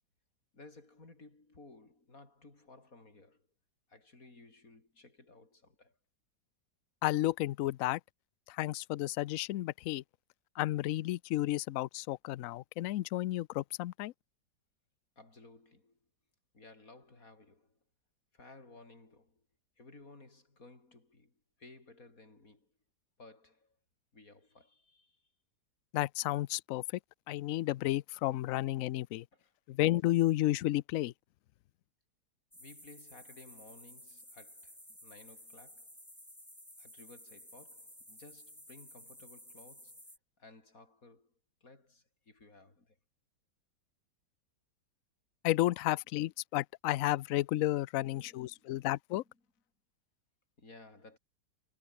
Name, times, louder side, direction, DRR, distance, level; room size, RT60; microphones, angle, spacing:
voice 1, 0.5-3.5 3.9-6.0 15.2-16.1 16.5-17.8 18.3-19.5 19.8-22.7 23.2-23.8 24.1-25.3 29.3-29.6 32.5-36.0 36.8-43.0 48.1-48.8 49.2-49.4 50.6-51.2, left 2 dB, 50° left, 5.6 m, -57 dB
voice 2, 7.0-8.0 8.5-10.0 10.6-14.1 25.9-26.8 27.3-29.2 29.7-31.1 45.4-49.2, left 15 dB, 75° left, 0.7 m, -32 dB
sound 1, 32.5-40.2, equal, 10° left, 6.6 m, -54 dB
omnidirectional pair, 1.9 m